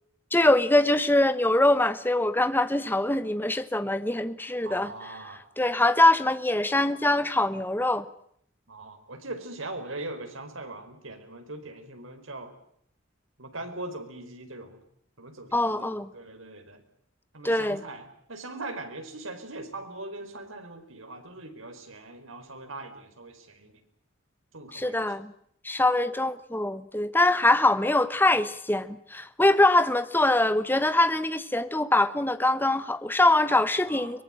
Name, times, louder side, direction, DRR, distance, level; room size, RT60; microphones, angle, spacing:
voice 1, 0.3-4.9 5.6-8.0 15.5-16.1 17.4-17.8 24.7-25.3 25.6-34.2, left 2 dB, 10° left, 13 dB, 1.1 m, -23 dB
voice 2, 4.6-5.4 8.7-12.5 13.4-14.8 15.2-16.8 17.3-23.8 24.5-25.1 33.9-34.1, right 2 dB, 85° right, 6 dB, 4.8 m, -41 dB
23.5 x 21.5 x 9.0 m, 0.67 s
head